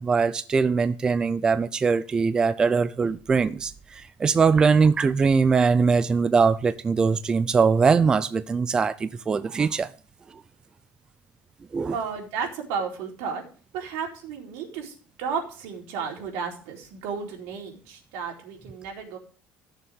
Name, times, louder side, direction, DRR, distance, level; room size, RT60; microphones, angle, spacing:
voice 1, 0.0-9.9 10.3-10.4 11.7-11.9, right 5 dB, 20° right, 0.4 m, -22 dB
voice 2, 11.9-13.4 13.7-19.2, right 6 dB, 80° right, 4.3 m, -33 dB
17.0 x 7.0 x 3.6 m
cardioid pair, 160°, 4 cm